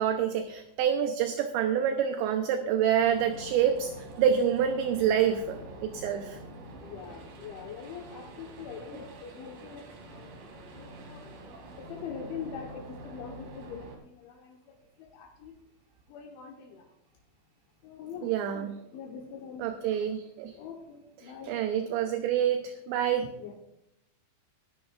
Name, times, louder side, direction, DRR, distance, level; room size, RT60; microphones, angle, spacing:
voice 1, 0.0-3.9 4.2-6.4 18.2-18.8 19.6-20.5 21.2-23.3, right 9 dB, 75° right, 6 dB, 2.8 m, -27 dB
sound 1, 3.0-14.0, right 1 dB, 50° right, 3.5 m, -46 dB
voice 2, 6.8-10.3 10.8-11.3 11.8-14.6 15.1-15.5 16.1-16.8 17.8-19.6 20.6-21.5 23.4-23.6, left 6 dB, 75° left, 0 dB, 3.5 m, -43 dB
21.0 x 11.0 x 2.5 m, 0.82 s
omnidirectional pair, 5.6 m